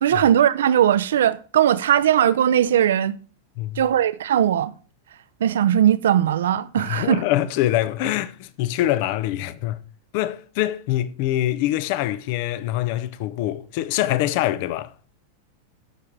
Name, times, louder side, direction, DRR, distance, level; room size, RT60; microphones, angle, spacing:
voice 1, 0.0-3.2 3.8-4.7 5.4-7.2, right 10 dB, 60° right, 0.5 m, -19 dB
voice 2, 6.8-9.8 10.1-14.9, left 14 dB, 45° left, 0.7 m, -24 dB
13.5 x 5.9 x 4.5 m
figure-of-eight pair, 90°, 0 cm